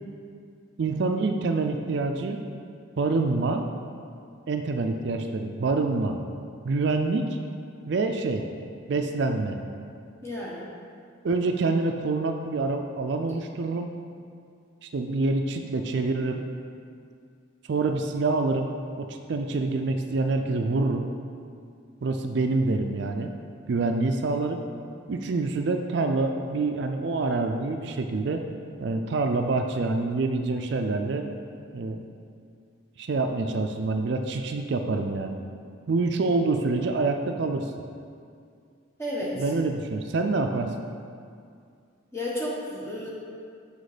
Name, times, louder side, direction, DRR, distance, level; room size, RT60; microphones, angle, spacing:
voice 1, 0.8-2.4 3.0-3.7 4.5-6.2 6.6-7.4 7.9-8.4 8.9-9.6 11.2-13.9 14.8-16.4 17.7-18.7 19.0-21.1 22.0-23.3 23.7-24.6 25.1-28.4 28.8-31.3 31.7-32.0 33.0-35.4 35.9-37.7 39.3-40.7, right 3 dB, 55° right, 5 dB, 0.4 m, -26 dB
voice 2, 10.2-10.6 39.0-39.3 42.1-43.1, left 1 dB, 15° left, -6 dB, 1.2 m, -32 dB
6.4 x 5.2 x 5.0 m, 2.3 s
head